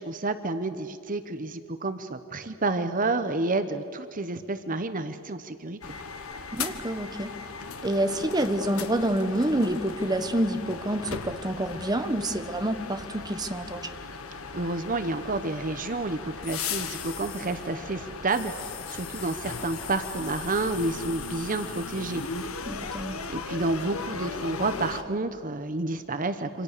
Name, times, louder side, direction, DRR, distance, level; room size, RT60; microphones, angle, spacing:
voice 1, 0.0-6.0 14.5-22.5 22.8-22.9 23.3-26.6, right 2 dB, 40° right, 10 dB, 1.0 m, -30 dB
sound 1, 5.8-25.0, left 5 dB, 85° left, 1.5 m, -37 dB
voice 2, 6.5-7.3 7.8-13.9 22.7-23.2, right 1 dB, 20° right, 8 dB, 1.2 m, -28 dB
27.5 x 26.0 x 6.8 m, 2.4 s
head